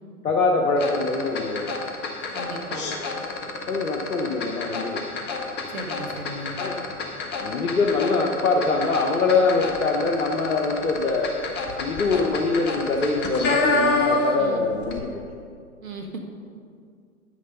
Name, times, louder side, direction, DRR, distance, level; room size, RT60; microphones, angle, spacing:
voice 1, 0.2-1.7 3.7-5.0 6.6-6.8 7.4-11.3 11.8-15.2, left 3 dB, 80° left, 0 dB, 1.0 m, -23 dB
sound 1, 0.8-14.5 14.8-15.0, left 3 dB, 25° left, 1.1 m, -28 dB
voice 2, 2.3-2.9 5.7-6.6 14.4-14.6 15.8-16.2, right 2 dB, 70° right, 4 dB, 1.5 m, -36 dB
9.6 x 6.5 x 5.4 m, 2.2 s
figure-of-eight pair, 105°, 42 cm